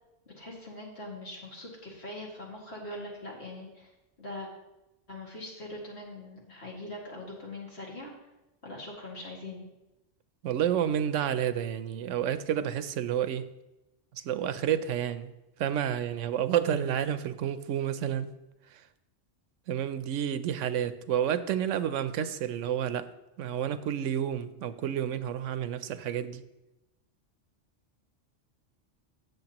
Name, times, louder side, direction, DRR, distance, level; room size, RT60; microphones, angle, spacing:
voice 1, 0.4-3.9 4.2-4.5 5.1-8.1 8.6-9.7, left 1 dB, 60° left, 2.5 m, -42 dB
voice 2, 10.4-13.5 14.1-15.3 15.6-18.3 18.7-18.9 19.7-23.1 23.4-26.4, right 9 dB, 85° right, 0.9 m, -30 dB
16.0 x 6.7 x 2.9 m
omnidirectional pair, 1.3 m